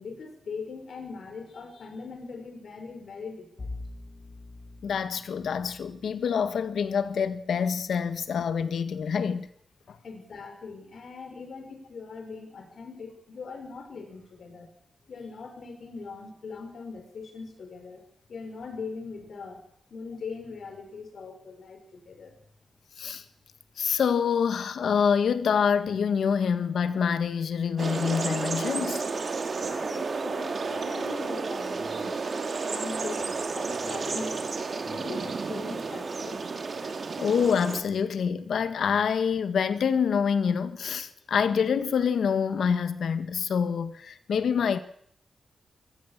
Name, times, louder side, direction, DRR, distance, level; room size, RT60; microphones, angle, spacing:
voice 1, 0.0-3.8 10.0-14.7 15.1-18.0 18.3-19.6 19.9-22.4 29.6-32.2 32.7-36.4, left 4 dB, 60° left, 5.9 m, -41 dB
Bowed string instrument, 3.6-8.7, left 2 dB, 30° left, 3.2 m, -46 dB
voice 2, 4.8-9.5 9.9-10.0 23.0-23.2 23.8-29.1 37.2-44.8, left 6 dB, 85° left, 1.7 m, -26 dB
sound 1, 27.8-37.8, right 4 dB, 40° right, 2.5 m, -32 dB
23.5 x 17.5 x 7.5 m
wide cardioid pair, 175°, 0 cm